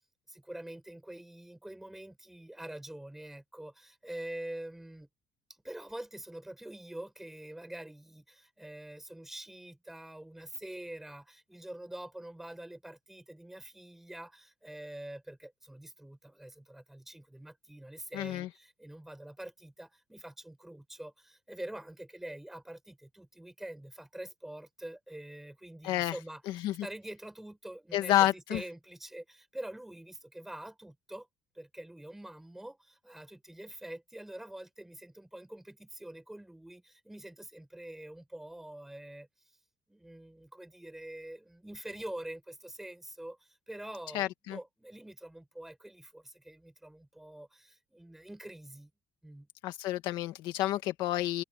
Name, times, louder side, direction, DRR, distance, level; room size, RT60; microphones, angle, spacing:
voice 1, 0.3-5.1 5.5-31.3 31.5-39.3 39.9-48.9 49.2-49.5, right 1 dB, 5° right, 7.6 m, -45 dB
voice 2, 18.1-18.5 25.8-26.2 26.5-26.9 27.9-28.6 44.1-44.6 49.6-51.4, left 14 dB, 60° left, 1.7 m, -30 dB
cardioid pair, 175°, 9 cm